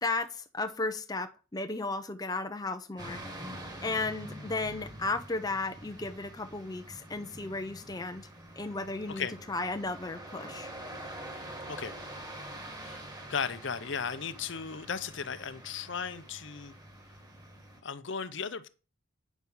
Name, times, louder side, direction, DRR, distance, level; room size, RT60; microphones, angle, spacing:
voice 1, 0.0-3.2 3.8-8.2 8.6-10.7, left 3 dB, 20° left, 0.6 m, -34 dB
sound 1, 3.0-17.8, right 1 dB, 20° right, 1.8 m, -46 dB
voice 2, 12.8-16.7 17.8-18.7, left 6 dB, 60° left, 0.7 m, -36 dB
9.2 x 6.1 x 5.6 m
head